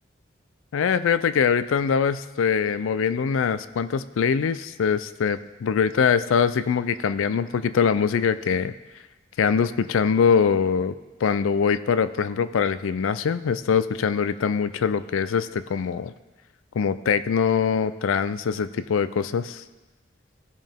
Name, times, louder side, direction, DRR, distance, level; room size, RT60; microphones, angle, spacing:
voice 1, 0.7-8.7 9.4-10.9 11.2-16.1 16.7-19.6, left 6 dB, 85° left, 14 dB, 0.4 m, -23 dB
15.0 x 5.5 x 3.5 m, 1.2 s
head